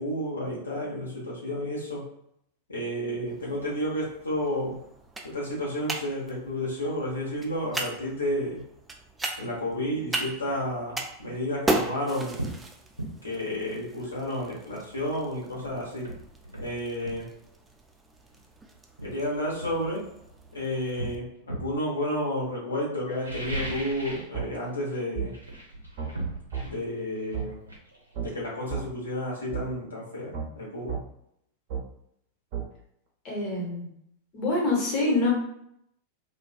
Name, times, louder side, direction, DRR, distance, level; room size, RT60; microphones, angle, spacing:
voice 1, 0.0-2.1 2.7-4.8 5.2-8.6 9.4-12.5 13.2-16.1 16.6-17.3 19.0-20.0 20.5-25.3 26.6-27.6 28.2-31.0, equal, 75° left, -5 dB, 0.9 m, -31 dB
sound 1, 3.3-21.2, right 2 dB, 10° right, 0.3 m, -38 dB
sound 2, 11.6-11.8 12.4-12.6 13.0-13.2 15.1-15.2 15.6-17.2 18.3-18.5 19.0-20.4 21.0-21.8 23.1-24.3 24.6-25.0 25.3-28.9 29.1-29.2, right 1 dB, 85° right, 0.6 m, -37 dB
sound 3, 24.3-24.5 25.1-25.3 26.0-26.1 26.5-26.7 27.3-27.5 28.1-28.3 28.7-28.8 29.5-29.6 30.3-30.5 30.9-31.0 31.7-31.8 32.5-32.7, right 7 dB, 45° right, 0.7 m, -31 dB
voice 2, 33.2-33.9 34.3-35.3, left 2 dB, 35° left, -3 dB, 0.9 m, -25 dB
2.5 x 2.3 x 2.3 m, 0.74 s
figure-of-eight pair, 90°, 0 cm